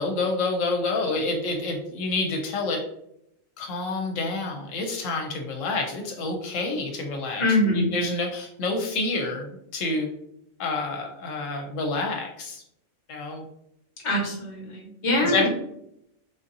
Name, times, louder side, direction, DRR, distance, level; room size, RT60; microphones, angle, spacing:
voice 1, 0.0-2.8 3.6-10.1 10.6-12.6 13.1-13.4 15.2-15.5, left 3 dB, 75° left, 2 dB, 0.9 m, -28 dB
voice 2, 7.4-8.0 14.0-15.5, left 1 dB, 25° left, -1 dB, 0.8 m, -24 dB
3.6 x 2.6 x 2.6 m, 0.75 s
omnidirectional pair, 1.4 m